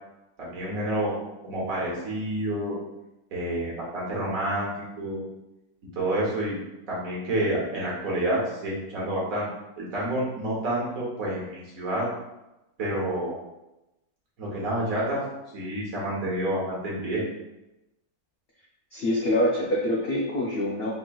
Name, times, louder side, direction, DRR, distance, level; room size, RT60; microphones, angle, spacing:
voice 1, 0.4-1.1 1.4-2.7 3.3-4.7 5.0-5.3 5.9-6.6 6.9-9.5 9.8-12.1 12.8-13.4 14.4-15.2 15.5-17.2, right 1 dB, 65° right, -5 dB, 1.5 m, -28 dB
voice 2, 18.9-20.9, left 1 dB, 70° left, -3 dB, 0.5 m, -25 dB
4.3 x 3.0 x 2.3 m, 0.95 s
omnidirectional pair, 1.6 m